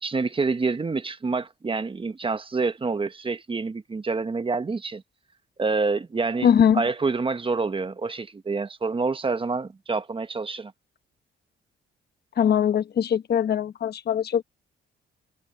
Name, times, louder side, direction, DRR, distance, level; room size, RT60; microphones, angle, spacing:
voice 1, 0.0-5.0 5.6-6.5 6.7-10.7, right 4 dB, 25° right, 1.2 m, -27 dB
voice 2, 6.4-6.8 12.4-14.4, left 8 dB, 55° left, 1.2 m, -21 dB
cardioid pair, 90°, 20 cm